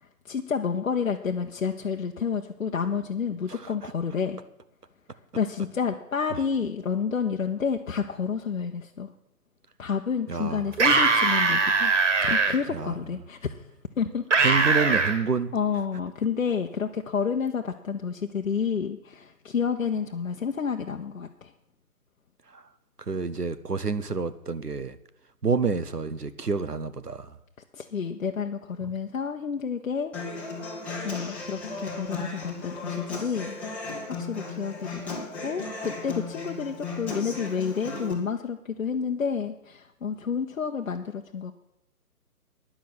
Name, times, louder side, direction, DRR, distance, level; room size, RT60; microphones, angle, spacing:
voice 1, 0.2-4.4 5.4-9.1 9.8-11.9 12.2-13.6 14.0-14.3 14.6-14.7 15.5-21.5 27.7-30.1 31.0-33.6 34.2-41.5, left 6 dB, 55° left, 3 dB, 0.9 m, -30 dB
voice 2, 3.5-3.9 6.3-6.4 10.3-10.7 12.7-12.9 14.4-15.5 22.5-22.6 23.0-25.0 25.4-27.4, right 4 dB, 90° right, 13 dB, 1.1 m, -28 dB
sound 1, 10.7-12.5 14.3-15.2, right 4 dB, 50° right, 2.0 m, -21 dB
Human voice / Acoustic guitar, 30.1-38.1, left 3 dB, 5° left, 1.0 m, -36 dB
10.0 x 7.3 x 9.5 m, 0.82 s
figure-of-eight pair, 140°, 46 cm